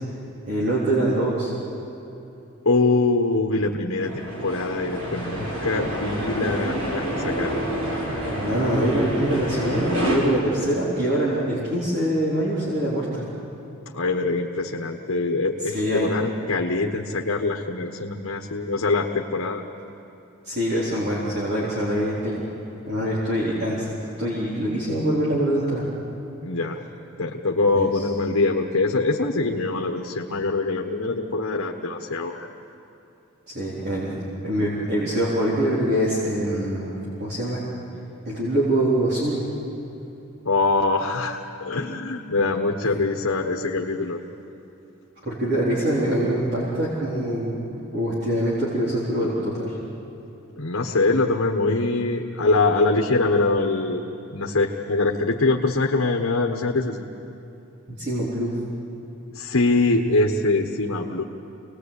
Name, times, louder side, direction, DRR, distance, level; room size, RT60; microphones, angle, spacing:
voice 1, 0.5-1.5 8.3-13.2 15.7-16.1 20.4-22.4 22.9-23.9 24.2-25.8 27.7-27.9 33.5-34.1 34.4-37.6 38.3-39.4 45.2-49.8 58.0-58.5, right 1 dB, 50° right, -7 dB, 4.0 m, -24 dB
voice 2, 2.6-7.6 13.9-19.6 26.4-26.8 27.2-32.5 40.4-44.2 50.6-54.0 54.3-57.1 59.3-61.2, left 3 dB, 75° left, 2 dB, 1.2 m, -23 dB
sound 1, 4.0-10.2, equal, 75° right, 6.9 m, -28 dB
26.0 x 19.5 x 8.4 m, 3.0 s
head